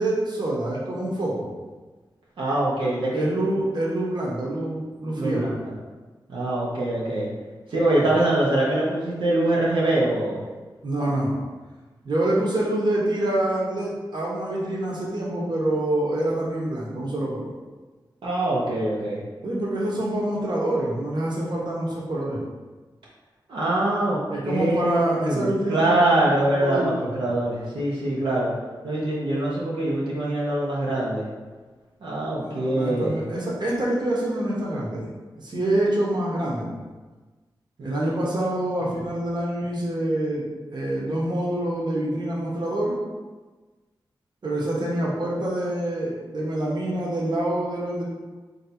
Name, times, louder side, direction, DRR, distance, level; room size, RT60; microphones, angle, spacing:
voice 1, 0.0-1.5 3.1-5.4 8.0-8.2 10.8-11.3 12.0-17.5 19.4-22.4 24.3-27.3 32.4-35.1 35.4-36.8 37.8-43.0 44.4-48.0, right 1 dB, 60° right, -4 dB, 1.0 m, -26 dB
voice 2, 2.4-3.2 5.2-5.5 6.3-7.3 7.7-10.4 18.2-19.2 23.5-28.5 28.8-31.3 32.0-33.2 37.8-38.1, right 1 dB, 90° right, -7 dB, 0.8 m, -24 dB
3.2 x 2.7 x 4.2 m, 1.3 s
cardioid pair, 60°, 8 cm